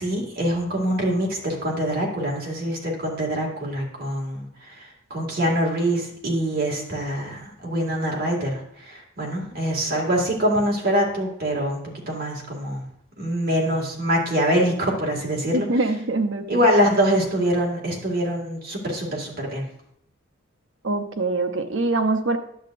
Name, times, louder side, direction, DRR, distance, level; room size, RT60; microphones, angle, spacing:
voice 1, 0.0-11.8 12.1-12.9 13.2-15.7 16.5-19.7, equal, 45° right, -1 dB, 2.0 m, -24 dB
voice 2, 15.5-16.7 20.8-22.4, right 2 dB, 65° right, 7 dB, 0.7 m, -24 dB
10.0 x 7.5 x 2.5 m, 0.71 s
head